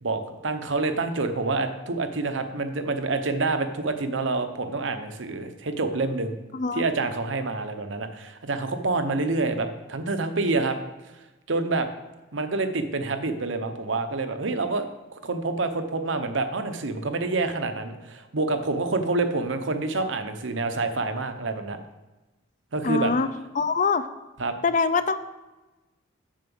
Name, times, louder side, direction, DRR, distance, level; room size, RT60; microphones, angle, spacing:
voice 1, 0.0-6.4 6.7-10.8 11.5-11.9 12.3-14.9 15.2-21.8 22.7-23.1 24.4-24.5, right 3 dB, 65° right, 8 dB, 0.9 m, -27 dB
voice 2, 6.5-6.8 22.8-23.3 23.5-24.1 24.6-25.2, left 4 dB, 40° left, 12 dB, 0.4 m, -23 dB
7.4 x 5.9 x 7.1 m, 1.1 s
head